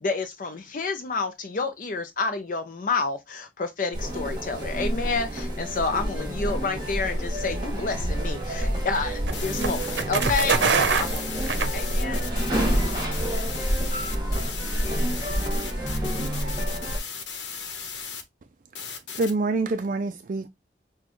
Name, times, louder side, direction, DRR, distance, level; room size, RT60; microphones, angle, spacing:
voice 1, 0.0-12.3, left 4 dB, 45° left, 0.5 m, -29 dB
sound 1, 3.9-17.0, equal, 25° right, 1.6 m, -28 dB
voice 2, 5.8-6.9 13.2-14.7, left 2 dB, 5° right, 3.4 m, -46 dB
sound 2, 7.9-12.3, right 5 dB, 80° right, 0.6 m, -26 dB
sound 3, 9.3-18.2 18.8-19.3, left 6 dB, 85° left, 0.9 m, -36 dB
voice 3, 19.1-20.5, right 3 dB, 45° right, 0.4 m, -26 dB
6.1 x 2.3 x 3.0 m
head